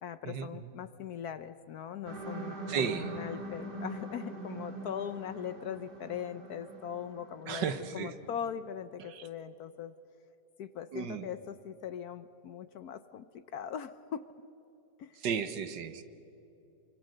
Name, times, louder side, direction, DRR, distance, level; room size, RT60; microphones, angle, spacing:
voice 1, 0.0-9.9 10.6-14.2 15.0-15.2, left 8 dB, 65° left, 13 dB, 1.1 m, -40 dB
sound 1, 2.1-8.1, right 2 dB, 25° right, 2.4 m, -43 dB
voice 2, 2.7-3.1 7.5-8.1 9.1-9.3 10.9-11.3 15.2-16.0, right 7 dB, 70° right, 11 dB, 1.7 m, -34 dB
27.0 x 24.5 x 6.6 m, 2.9 s
omnidirectional pair, 2.0 m